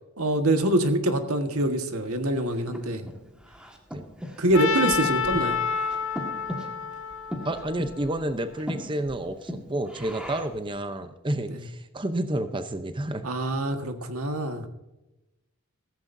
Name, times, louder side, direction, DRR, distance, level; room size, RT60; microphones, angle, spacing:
voice 1, 0.2-3.0 4.4-5.6 11.5-11.6 13.2-14.6, right 1 dB, 90° right, 6 dB, 1.6 m, -25 dB
Breathing, 2.2-10.7, equal, 5° right, 1.7 m, -39 dB
Trumpet, 4.5-8.6, left 6 dB, 65° left, 1.7 m, -29 dB
voice 2, 7.4-13.3, right 1 dB, 25° right, 8 dB, 0.7 m, -30 dB
15.5 x 14.5 x 2.7 m, 0.95 s
head